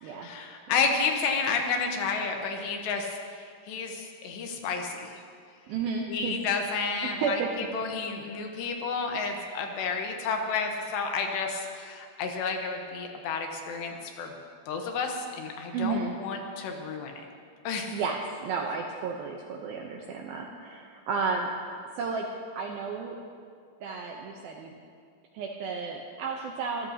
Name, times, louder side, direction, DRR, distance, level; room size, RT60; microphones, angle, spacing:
voice 1, 0.0-3.1 3.7-5.2 6.1-14.3 14.7-17.3 17.6-18.0, left 5 dB, 75° left, 3 dB, 3.1 m, -31 dB
voice 2, 5.7-6.4 7.0-7.5 15.7-16.1 17.9-21.5 22.0-22.3 22.5-23.2 23.8-24.7 25.3-26.9, right 5 dB, 80° right, 1 dB, 2.2 m, -32 dB
25.0 x 14.0 x 2.8 m, 2.2 s
omnidirectional pair, 5.2 m